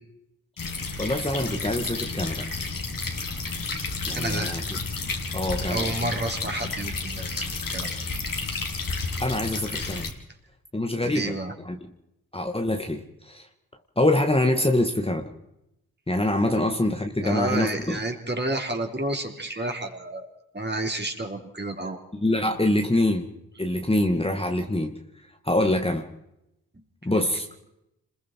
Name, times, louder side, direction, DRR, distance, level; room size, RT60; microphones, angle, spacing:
sound 1, 0.6-10.1, left 3 dB, 55° left, 3.6 m, -31 dB
voice 1, 1.0-2.5 4.1-4.8 5.3-5.9 9.2-10.1 10.7-11.4 11.7-11.9 12.3-13.5 14.0-15.3 16.1-18.0 22.1-23.3 23.6-25.0 25.4-26.1 27.0-27.6, left 1 dB, 15° left, 4 dB, 2.0 m, -25 dB
voice 2, 4.1-4.6 5.7-8.2 11.0-11.5 17.2-20.3 20.5-22.0 27.1-27.2, right 1 dB, 25° right, 2 dB, 4.3 m, -30 dB
27.0 x 21.5 x 4.7 m, 0.85 s
supercardioid pair, 50°, 39 cm